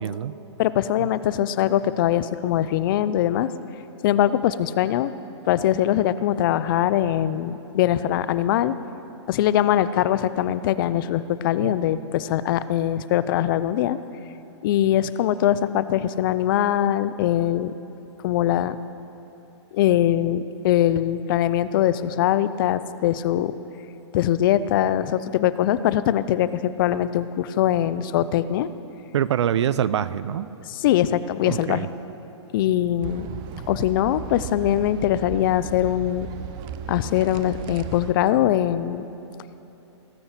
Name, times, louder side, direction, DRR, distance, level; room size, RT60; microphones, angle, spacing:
voice 1, 0.0-0.3 1.0-1.1 11.6-11.7 29.1-30.5 31.5-31.9, right 9 dB, 70° right, 16 dB, 0.5 m, -25 dB
voice 2, 0.6-3.5 4.0-5.1 5.5-8.7 9.3-14.0 14.6-17.7 18.2-18.8 19.7-23.5 24.1-28.7 30.7-31.9 32.5-33.3 33.7-36.3 36.9-39.0, left 12 dB, 50° left, 15 dB, 0.5 m, -22 dB
sound 1, 33.0-38.1, right 8 dB, 30° right, 0.6 m, -36 dB
18.0 x 8.6 x 5.9 m, 2.9 s
hypercardioid pair, 130°, 15 cm